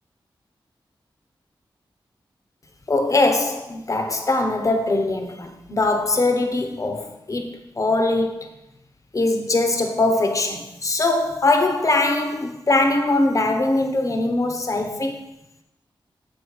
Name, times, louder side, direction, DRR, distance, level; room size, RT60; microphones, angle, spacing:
voice 1, 2.9-8.5 9.1-15.2, left 2 dB, 40° left, 1.0 m, -21 dB
8.2 x 4.6 x 4.7 m
wide cardioid pair, 75°, 9 cm